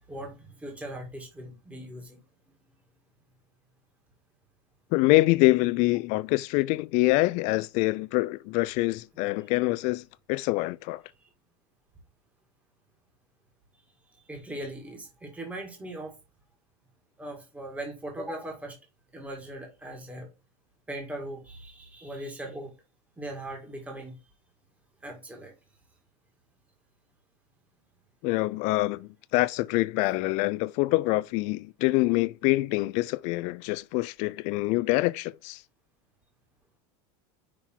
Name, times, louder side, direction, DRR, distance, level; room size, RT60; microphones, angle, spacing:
voice 1, 0.1-2.2 9.4-9.5 14.3-16.1 17.2-18.8 19.1-20.3 20.9-22.7 23.2-24.2 25.0-25.5, right 1 dB, 10° right, 1.9 m, -39 dB
voice 2, 4.9-11.0 28.2-35.6, left 21 dB, 55° left, 0.4 m, -25 dB
5.9 x 3.8 x 4.5 m
supercardioid pair, 135°, 15 cm